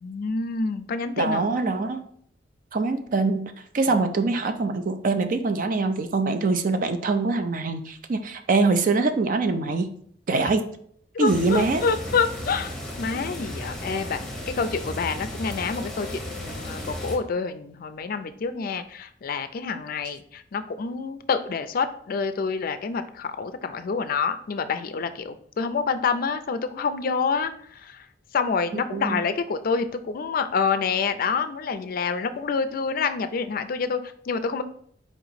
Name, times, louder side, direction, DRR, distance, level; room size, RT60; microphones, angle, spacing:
voice 1, 0.0-1.4 11.1-12.7 13.0-14.2 14.5-28.0 28.3-34.0 34.3-34.6, left 5 dB, 50° left, 10 dB, 0.4 m, -27 dB
voice 2, 1.2-2.0 2.7-9.9 10.3-10.6 11.2-11.8 28.9-29.2, right 3 dB, 50° right, 8 dB, 0.5 m, -24 dB
sound 1, 11.2-17.2, left 1 dB, 5° left, 1.2 m, -35 dB
4.5 x 2.9 x 4.1 m, 0.62 s
head